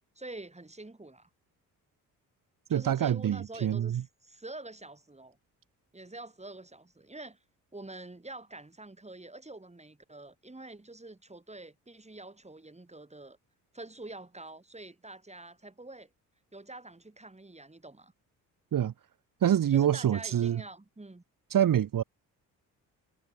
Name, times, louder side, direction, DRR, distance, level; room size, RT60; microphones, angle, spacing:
voice 1, 0.2-1.3 2.7-5.4 5.9-7.4 7.7-13.4 13.7-16.1 16.5-18.1 19.7-21.2, right 2 dB, 15° right, 7.1 m, -46 dB
voice 2, 2.7-4.0 18.7-18.9 19.4-20.6 21.5-22.0, right 10 dB, 55° right, 1.6 m, -26 dB
supercardioid pair, 60°, 41 cm